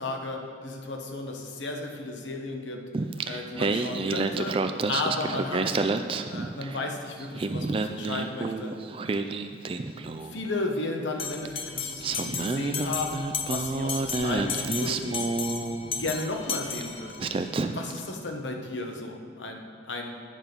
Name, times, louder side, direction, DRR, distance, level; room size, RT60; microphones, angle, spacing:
voice 1, 0.0-2.8 3.3-5.8 6.3-8.7 10.3-15.2 15.9-17.3 17.7-20.1, left 2 dB, 80° left, 3 dB, 1.0 m, -34 dB
Singing, 2.9-6.9 7.2-10.4 11.5-11.6 12.0-16.2 16.8-16.9 17.2-18.0, right 3 dB, 30° right, 0.3 m, -29 dB
Bell, 11.2-17.4, left 6 dB, 30° left, 0.5 m, -35 dB
9.1 x 6.0 x 5.2 m, 2.1 s
head